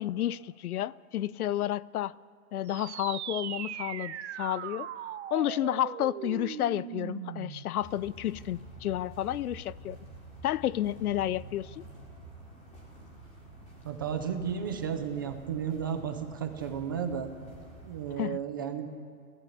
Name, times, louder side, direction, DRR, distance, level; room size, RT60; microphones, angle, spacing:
voice 1, 0.0-2.2 2.5-4.9 5.3-10.0 10.4-11.8 18.2-18.4, left 12 dB, 80° left, 0.7 m, -31 dB
sound 1, 2.7-7.7, right 11 dB, 50° right, 1.1 m, -39 dB
sound 2, 7.8-18.2, right 1 dB, 15° left, 4.0 m, -49 dB
voice 2, 13.8-17.3 17.8-18.9, right 7 dB, 15° right, 0.5 m, -33 dB
29.5 x 14.5 x 8.5 m
hypercardioid pair, 175°, 44 cm